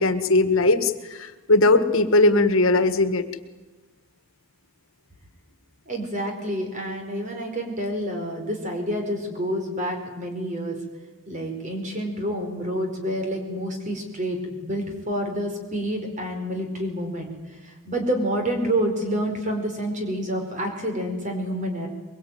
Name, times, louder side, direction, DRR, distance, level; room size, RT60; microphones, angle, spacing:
voice 1, 0.0-3.2, left 2 dB, 65° left, 11 dB, 1.7 m, -19 dB
voice 2, 5.9-10.8 11.3-17.3 17.6-21.9, equal, 35° right, 4 dB, 4.7 m, -28 dB
23.5 x 22.5 x 9.3 m, 1.2 s
head